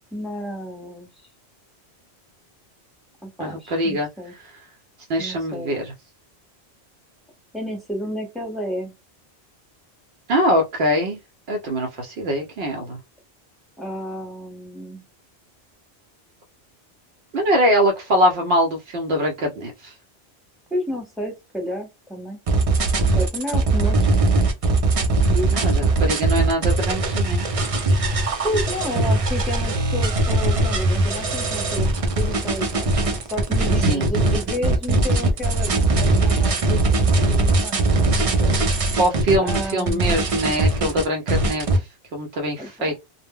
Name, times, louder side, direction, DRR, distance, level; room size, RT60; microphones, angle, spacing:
voice 1, 0.1-1.1 3.2-4.3 5.2-5.8 7.5-8.9 13.8-15.0 20.7-22.4 23.2-24.0 25.3-25.5 28.4-32.9 33.3-38.5 39.4-40.2 42.6-42.9, equal, ahead, 0.6 m, -31 dB
voice 2, 3.4-4.1 4.4-4.5 5.1-5.9 10.3-11.2 11.5-13.0 17.3-19.9 25.5-27.5 33.8-34.1 39.0-43.0, equal, 70° right, 0.8 m, -23 dB
sound 1, 22.5-41.8, right 2 dB, 45° right, 0.5 m, -20 dB
2.0 x 2.0 x 3.4 m
omnidirectional pair, 1.1 m